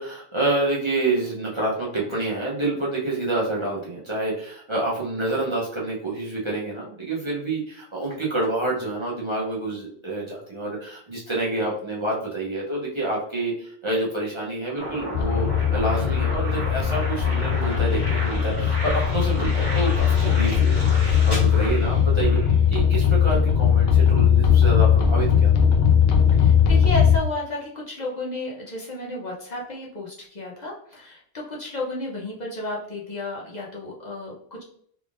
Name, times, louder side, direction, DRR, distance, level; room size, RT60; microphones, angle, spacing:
voice 1, 0.0-22.4 22.7-25.5, right 2 dB, 30° right, -5 dB, 0.7 m, -28 dB
sound 1, 14.8-22.6, equal, 20° left, 1.3 m, -33 dB
sound 2, 15.1-27.2, left 8 dB, 70° left, 0.8 m, -19 dB
voice 2, 26.3-34.6, left 2 dB, 45° left, -3 dB, 0.8 m, -32 dB
3.5 x 3.4 x 2.4 m, 0.63 s
omnidirectional pair, 1.1 m